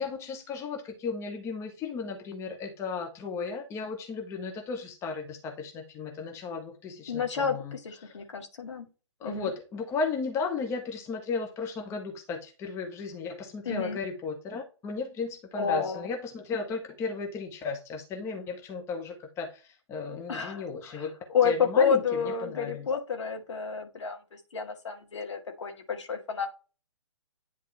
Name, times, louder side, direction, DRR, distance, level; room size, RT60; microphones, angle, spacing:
voice 1, 0.0-7.8 8.0-8.2 9.2-21.1 21.4-22.9, left 4 dB, 15° left, 1.0 m, -35 dB
voice 2, 7.1-8.9 9.2-9.5 13.7-14.0 15.6-16.1 20.3-26.5, left 6 dB, 65° left, 2.0 m, -30 dB
10.0 x 3.6 x 3.3 m
figure-of-eight pair, 130°, 16 cm